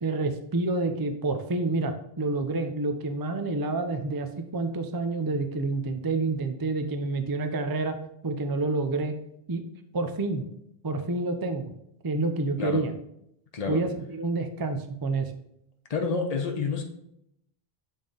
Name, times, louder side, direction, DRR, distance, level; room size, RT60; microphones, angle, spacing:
voice 1, 0.0-8.0 8.2-9.1 9.5-9.6 9.9-10.4 10.8-11.7 12.0-12.9 13.7-15.3, right 3 dB, 35° right, 7 dB, 0.3 m, -28 dB
voice 2, 13.5-13.8 15.9-16.8, left 4 dB, 40° left, 2 dB, 0.9 m, -28 dB
7.0 x 3.6 x 3.8 m, 0.76 s
omnidirectional pair, 1.0 m